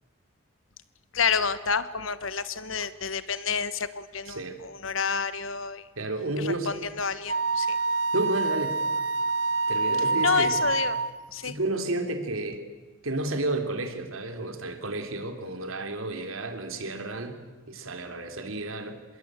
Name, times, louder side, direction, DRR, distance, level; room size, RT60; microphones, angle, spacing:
voice 1, 1.1-5.9 6.4-7.8 10.2-11.0 11.3-11.6, left 6 dB, 75° left, 14 dB, 1.4 m, -29 dB
voice 2, 4.3-4.6 6.0-6.7 8.1-8.8 9.7-10.6 11.4-12.6 13.0-19.0, right 2 dB, 90° right, 6 dB, 3.3 m, -31 dB
Wind instrument woodwind instrument, 7.3-11.1, right 3 dB, 65° right, 1.4 m, -26 dB
25.0 x 21.5 x 9.0 m, 1.3 s
head